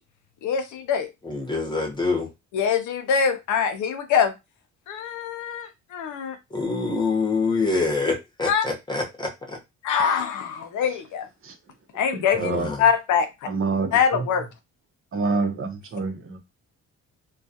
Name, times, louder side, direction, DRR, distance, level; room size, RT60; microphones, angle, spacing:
voice 1, 0.4-1.1 2.5-4.3 4.9-6.4 8.4-8.7 9.8-11.3 11.9-13.5 13.9-14.5, left 7 dB, 75° left, 0.6 m, -24 dB
voice 2, 1.3-2.3 6.5-9.6 12.4-12.8, left 3 dB, 15° left, 0.9 m, -25 dB
voice 3, 12.1-12.7 13.5-14.0 15.1-16.4, right 4 dB, 45° right, 0.7 m, -27 dB
2.3 x 2.3 x 2.7 m
cardioid pair, 90°, 30 cm